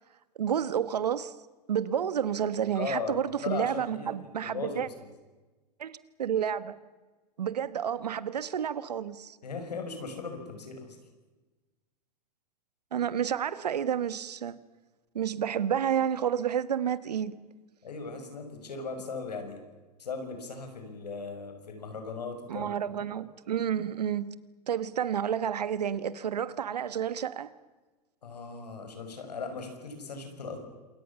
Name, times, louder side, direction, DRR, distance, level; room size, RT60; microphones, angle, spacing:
voice 1, 0.4-1.3 1.7-4.9 5.8-6.7 7.4-9.4 12.9-14.6 15.1-17.3 22.5-24.3 24.7-27.5, right 9 dB, 85° right, 16 dB, 1.4 m, -30 dB
voice 2, 2.7-4.1 4.4-4.8 9.4-11.0 17.8-19.6 20.0-23.0 28.2-30.6, left 4 dB, 85° left, 6 dB, 6.1 m, -38 dB
27.5 x 22.5 x 7.1 m, 1.2 s
hypercardioid pair, 105°, 20 cm